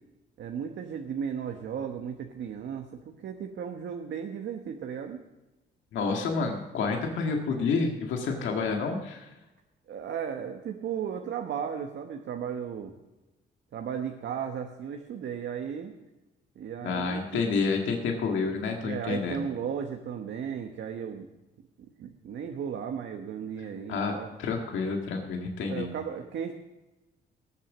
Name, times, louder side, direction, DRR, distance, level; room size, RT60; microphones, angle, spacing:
voice 1, 0.4-5.2 9.9-12.9 13.7-15.9 16.6-17.6 18.8-21.3 22.0-24.3 25.7-26.5, right 7 dB, 65° right, 5 dB, 1.1 m, -35 dB
voice 2, 5.9-9.3 16.8-19.5 23.9-25.9, left 4 dB, 75° left, 2 dB, 1.8 m, -29 dB
19.5 x 7.5 x 6.2 m, 1.1 s
cardioid pair, 90°, 20 cm